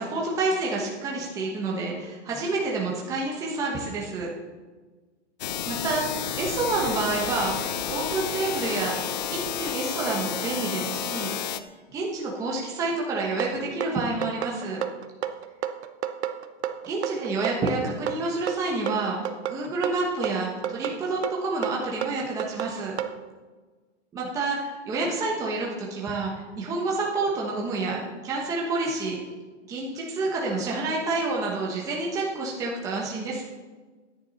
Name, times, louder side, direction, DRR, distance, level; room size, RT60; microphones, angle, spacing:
voice 1, 0.0-4.3 5.7-8.9 9.3-11.5 11.9-14.8 16.9-19.2 19.5-23.0 24.1-29.2 29.7-33.4, right 3 dB, 10° right, -3 dB, 1.1 m, -28 dB
sound 1, 5.4-11.6, left 9 dB, 35° left, 0.6 m, -31 dB
sound 2, 13.4-23.2, right 10 dB, 65° right, 1.0 m, -31 dB
14.0 x 10.0 x 4.1 m, 1.4 s
hypercardioid pair, 175°, 36 cm